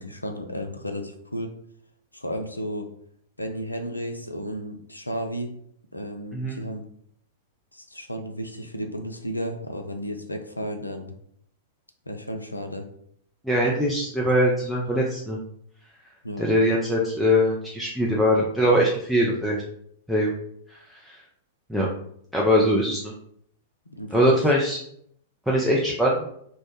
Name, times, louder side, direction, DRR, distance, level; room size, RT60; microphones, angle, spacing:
voice 1, 0.0-1.5 2.1-2.9 3.4-5.5 5.9-6.8 7.7-11.1 12.1-12.9 16.2-16.4 23.9-24.3, equal, 85° left, 5 dB, 0.4 m, -33 dB
voice 2, 13.4-15.4 16.4-19.6 20.1-20.3 21.1-21.2 21.7-21.9 22.3-23.1 24.1-24.8 25.5-26.3, equal, ahead, -4 dB, 0.4 m, -22 dB
2.1 x 2.0 x 3.1 m, 0.67 s
figure-of-eight pair, 100°, 0 cm